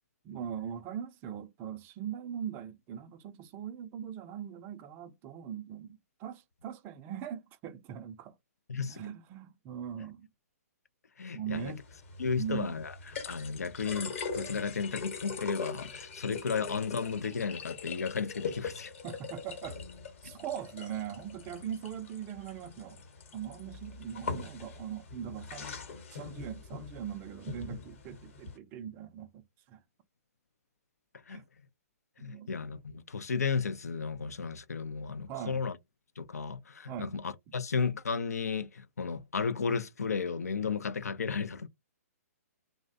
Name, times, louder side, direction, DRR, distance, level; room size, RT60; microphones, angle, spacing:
voice 1, 0.2-8.3 8.9-10.3 11.3-11.8 12.3-12.8 19.0-19.8 20.2-23.0 23.3-25.8 26.1-29.4 29.7-29.8 31.3-31.4 32.2-32.5 35.3-35.6 36.9-37.2, right 9 dB, 25° right, 0.3 m, -40 dB
voice 2, 8.7-9.0 11.2-11.7 12.2-12.9 13.3-18.9 20.2-20.3 31.3-31.4 32.2-35.8 36.2-41.7, left 5 dB, 80° left, 0.4 m, -34 dB
sound 1, 11.5-28.6, left 5 dB, 55° left, 0.9 m, -42 dB
2.5 x 2.1 x 2.4 m
figure-of-eight pair, 125°, 8 cm